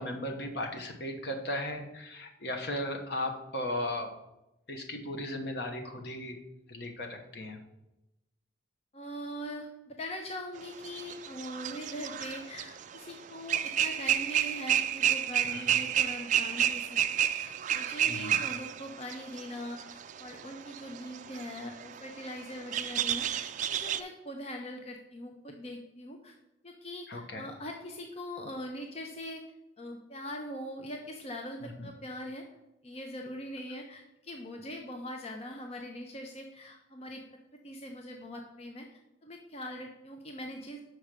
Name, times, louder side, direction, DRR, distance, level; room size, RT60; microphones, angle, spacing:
voice 1, 0.0-4.1 4.7-6.4 6.7-7.6 15.5-15.7 18.1-18.4 27.1-27.5 31.6-31.9, left 1 dB, 60° left, 3 dB, 1.1 m, -36 dB
voice 2, 8.9-26.4 26.6-29.4 29.8-32.4 32.8-37.2 37.6-40.8, left 1 dB, 35° left, 2 dB, 0.7 m, -42 dB
sound 1, 10.8-13.1 13.5-24.0, right 10 dB, 45° right, 0.3 m, -30 dB
6.2 x 4.7 x 6.6 m, 0.93 s
head